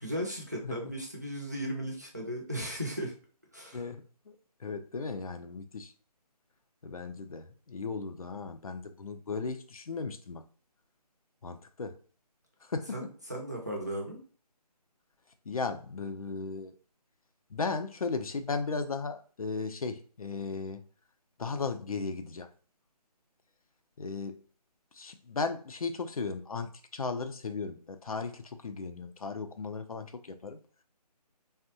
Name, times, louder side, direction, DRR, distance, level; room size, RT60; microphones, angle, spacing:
voice 1, 0.0-3.1 3.5-3.8 12.9-14.2, equal, 25° right, 0.5 m, -36 dB
voice 2, 3.7-5.9 6.8-10.4 11.4-12.0 12.6-13.1 15.5-16.7 17.5-20.8 21.4-22.5 24.0-24.3 24.9-30.6, left 4 dB, 60° left, 0.4 m, -36 dB
3.5 x 2.0 x 2.6 m
figure-of-eight pair, 175°, 21 cm